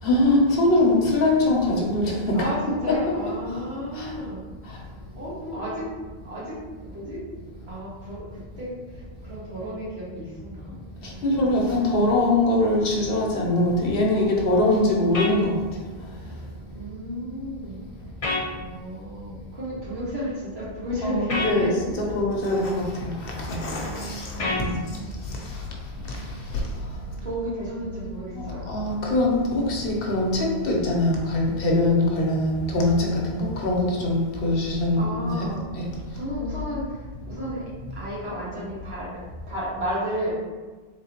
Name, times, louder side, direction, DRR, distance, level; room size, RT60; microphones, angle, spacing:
voice 1, 0.0-3.2 3.9-4.1 4.6-4.8 11.0-16.1 21.0-24.9 25.2-25.7 26.0-27.1 28.3-35.9, left 1 dB, 70° left, -1 dB, 1.0 m, -23 dB
voice 2, 2.3-4.5 5.1-5.9 6.2-7.2 7.7-10.7 11.0-12.0 16.7-17.9 18.5-21.7 23.8-25.2 25.9-26.6 27.2-28.7 34.9-35.7 36.1-37.6 37.9-39.2 39.5-40.3, equal, 85° right, -8 dB, 1.7 m, -33 dB
sound 1, 15.1-15.3 18.2-18.5 21.3-21.5 24.4-24.7, left 2 dB, 40° left, 0.6 m, -26 dB
3.7 x 3.7 x 2.9 m, 1.4 s
omnidirectional pair, 1.0 m